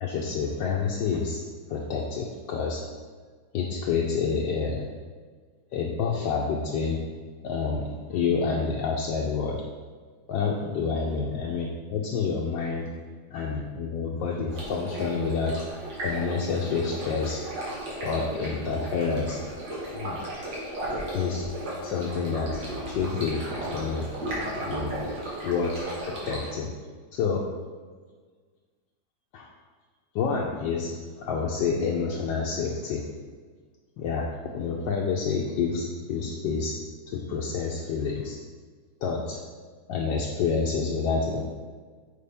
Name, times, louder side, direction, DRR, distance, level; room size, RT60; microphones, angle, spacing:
voice 1, 0.0-1.4 1.7-2.8 3.5-4.8 5.7-7.0 7.4-9.6 10.3-12.8 13.3-15.6 16.0-17.4 18.0-19.4 19.9-20.2 21.1-21.5 21.8-22.6 22.9-23.4 23.7-24.1 24.6-25.0 25.4-26.7 27.1-27.4 29.3-29.5 30.1-33.0 34.0-34.3 34.5-36.7 37.1-38.4 39.0-39.4 39.9-41.4, left 5 dB, 75° left, -2 dB, 1.3 m, -28 dB
Stream, 14.5-26.5, right 1 dB, 65° right, 2.2 m, -35 dB
6.7 x 4.7 x 3.5 m, 1.5 s
omnidirectional pair, 2.1 m